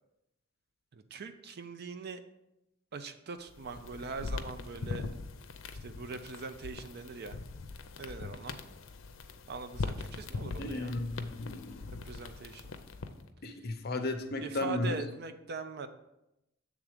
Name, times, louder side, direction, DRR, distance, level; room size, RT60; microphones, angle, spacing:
voice 1, 0.9-2.2 2.9-5.1 5.8-7.4 8.0-8.6 9.5-10.9 12.0-12.7 14.4-15.9, right 4 dB, 55° right, 9 dB, 0.5 m, -41 dB
sound 1, 3.5-13.3, left 3 dB, 85° left, 0.5 m, -41 dB
voice 2, 10.6-11.8 13.4-15.0, left 2 dB, 55° left, 7 dB, 0.7 m, -34 dB
7.3 x 3.6 x 5.0 m, 0.88 s
head